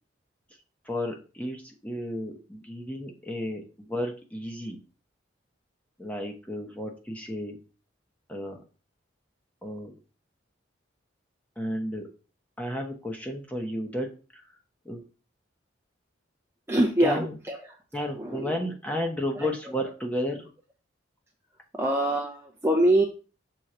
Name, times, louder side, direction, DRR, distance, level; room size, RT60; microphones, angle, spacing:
voice 1, 0.8-4.8 6.0-7.6 8.3-8.6 9.6-9.9 11.6-12.1 12.6-14.4 14.8-15.0 17.0-17.4 17.9-20.5, left 1 dB, 5° left, 1 dB, 1.0 m, -33 dB
voice 2, 16.7-17.2 17.5-17.6 18.2-18.5 19.4-19.5 21.8-23.0, right 1 dB, 10° right, 0 dB, 0.6 m, -23 dB
6.5 x 3.8 x 4.3 m, 0.35 s
head